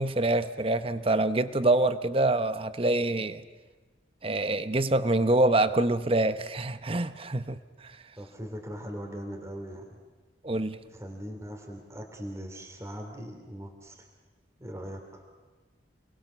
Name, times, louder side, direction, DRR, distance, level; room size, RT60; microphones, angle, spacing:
voice 1, 0.0-3.4 4.2-7.9 10.4-10.8, right 2 dB, 30° right, 0.8 m, -26 dB
voice 2, 8.2-10.0 10.9-14.1 14.6-15.2, equal, 15° right, 3.0 m, -40 dB
29.0 x 21.0 x 6.9 m
head